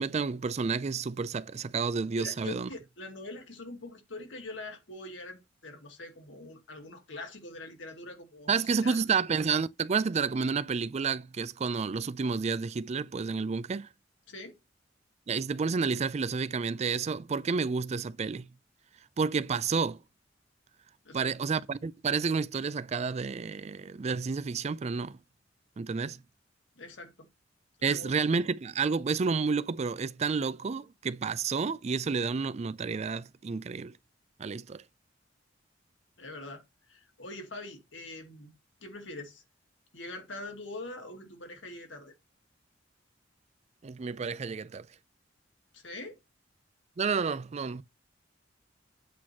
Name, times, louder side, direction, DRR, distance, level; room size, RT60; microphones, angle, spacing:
voice 1, 0.0-2.7 8.5-13.9 15.3-18.5 19.2-20.0 21.1-25.2 25.8-26.2 27.8-33.9 34.4-34.8 43.8-44.9 47.0-47.8, right 5 dB, 35° right, 0.4 m, -30 dB
voice 2, 2.2-9.0 14.3-14.6 21.0-21.3 26.8-27.3 27.8-28.2 36.2-38.5 38.8-39.4 39.9-42.1 45.7-46.2, left 2 dB, 80° left, 2.1 m, -43 dB
8.4 x 3.0 x 5.9 m
head